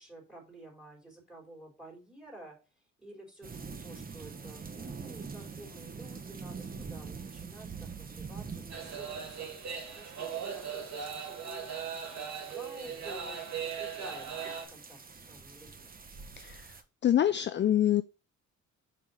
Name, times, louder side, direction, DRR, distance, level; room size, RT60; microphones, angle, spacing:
voice 1, 0.0-2.6 3.0-11.7 12.1-14.3 14.7-16.0, right 1 dB, ahead, 1 dB, 3.8 m, -51 dB
sound 1, 3.4-16.8, right 5 dB, 30° right, 1.0 m, -45 dB
sound 2, 8.7-14.7, right 7 dB, 65° right, 2.1 m, -39 dB
voice 2, 17.0-18.0, left 11 dB, 40° left, 12 dB, 0.4 m, -25 dB
5.4 x 5.0 x 5.5 m, 0.32 s
cardioid pair, 90°, 30 cm